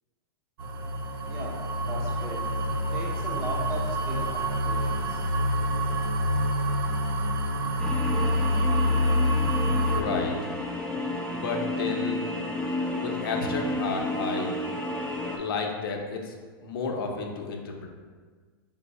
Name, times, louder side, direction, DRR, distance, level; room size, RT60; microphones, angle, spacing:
sound 1, 0.6-10.0, equal, 75° right, 0.4 m, -27 dB
voice 1, 1.3-5.2, right 2 dB, 20° right, -4 dB, 0.7 m, -38 dB
sound 2, 7.8-15.4, left 1 dB, 5° left, 0.4 m, -31 dB
voice 2, 9.8-10.4 11.3-12.3 13.0-14.5 15.4-16.4 16.6-17.9, left 4 dB, 65° left, 2 dB, 0.7 m, -32 dB
4.4 x 2.0 x 4.1 m, 1.5 s
supercardioid pair, 145°, 12 cm